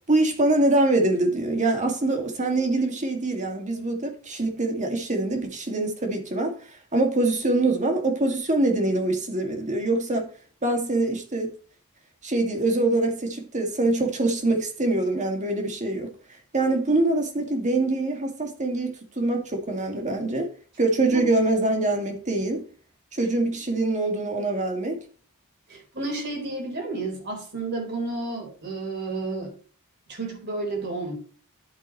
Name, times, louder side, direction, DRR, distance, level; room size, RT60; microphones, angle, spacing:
voice 1, 0.1-6.6 6.9-10.3 10.6-11.5 12.2-16.1 16.5-20.5 20.8-22.7 23.1-25.0, right 2 dB, 35° right, 2.1 m, -24 dB
voice 2, 25.7-29.5 30.1-31.1, right 3 dB, 50° right, 4.4 m, -31 dB
11.0 x 8.1 x 3.0 m
head